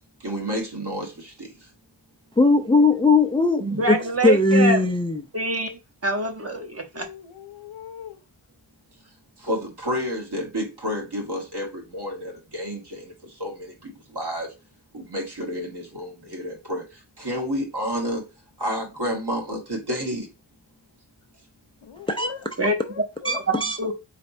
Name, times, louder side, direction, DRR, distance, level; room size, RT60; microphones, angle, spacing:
voice 1, 0.2-1.7 3.8-4.3 9.4-14.5 14.9-18.2 18.6-20.3, equal, 60° right, 1.4 m, -30 dB
voice 2, 2.4-5.2 22.1-22.3 23.2-23.9, left 3 dB, 15° left, 0.4 m, -19 dB
voice 3, 3.6-4.9 5.3-5.7 6.0-7.1 22.6-22.7 23.5-23.9, right 2 dB, 30° right, 0.9 m, -25 dB
voice 4, 6.9-8.2 21.8-22.5 22.8-23.4 23.8-23.9, left 8 dB, 90° left, 0.8 m, -39 dB
4.0 x 3.3 x 2.6 m
wide cardioid pair, 70°, 45 cm